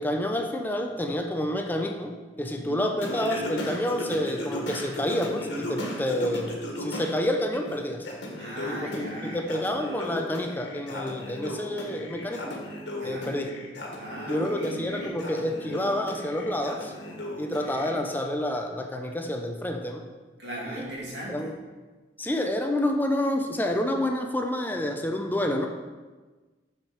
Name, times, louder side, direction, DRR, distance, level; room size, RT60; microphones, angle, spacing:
voice 1, 0.0-8.1 8.7-12.6 13.0-13.5 14.3-16.9 17.4-20.1 20.7-20.9 21.3-21.6 22.2-25.7, left 1 dB, 10° left, 3 dB, 0.5 m, -29 dB
Singing, 3.0-7.1 7.5-17.9, left 1 dB, 80° left, 1.6 m, -36 dB
voice 2, 8.4-9.4 13.0-13.3 14.0-15.1 20.4-21.5, right 1 dB, 80° right, -5 dB, 2.5 m, -37 dB
6.5 x 6.5 x 4.2 m, 1.3 s
head